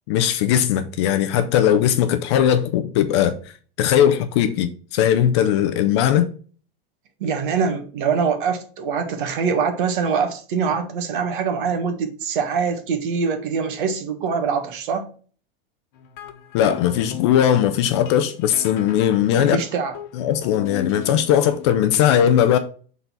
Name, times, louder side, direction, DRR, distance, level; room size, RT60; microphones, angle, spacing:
voice 1, 0.1-3.3 3.8-6.3 16.5-19.6 20.1-22.6, left 10 dB, 30° left, 0.4 m, -19 dB
voice 2, 7.2-15.1 19.3-20.0, right 6 dB, 60° right, 1.5 m, -24 dB
sound 1, 15.9-21.7, left 10 dB, 55° left, 1.1 m, -37 dB
6.8 x 4.0 x 5.7 m
supercardioid pair, 170°, 29 cm